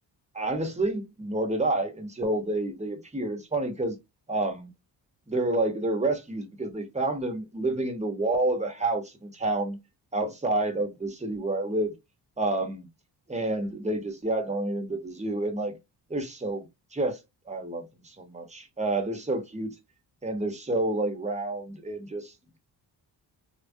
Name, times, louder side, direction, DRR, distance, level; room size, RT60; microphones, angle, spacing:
voice 1, 0.3-4.0 4.3-4.7 5.3-9.8 10.1-11.9 12.4-12.9 13.3-15.7 16.1-16.6 16.9-17.2 17.5-19.7 20.2-22.3, right 2 dB, 15° right, 1.0 m, -29 dB
3.4 x 2.4 x 2.7 m
cardioid pair, 85°, 43 cm